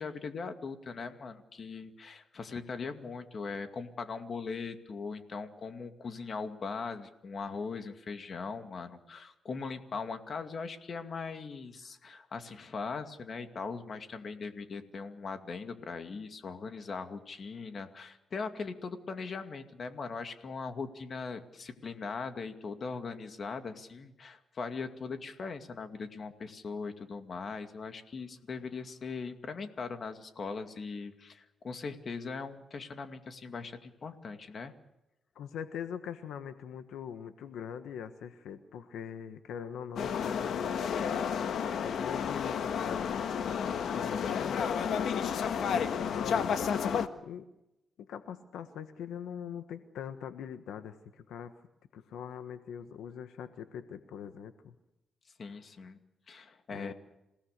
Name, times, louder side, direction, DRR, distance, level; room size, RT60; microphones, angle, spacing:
voice 1, 0.0-34.7 55.4-56.0 56.3-56.9, left 4 dB, 45° left, 7 dB, 2.3 m, -40 dB
voice 2, 35.3-44.8 45.2-47.5 48.1-51.5 51.9-54.7 56.7-56.9, left 8 dB, 90° left, 9 dB, 1.4 m, -42 dB
sound 1, 40.0-47.1, left 7 dB, 70° left, 1.5 m, -31 dB
28.0 x 18.0 x 6.7 m, 0.89 s
cardioid pair, 105°, 0 cm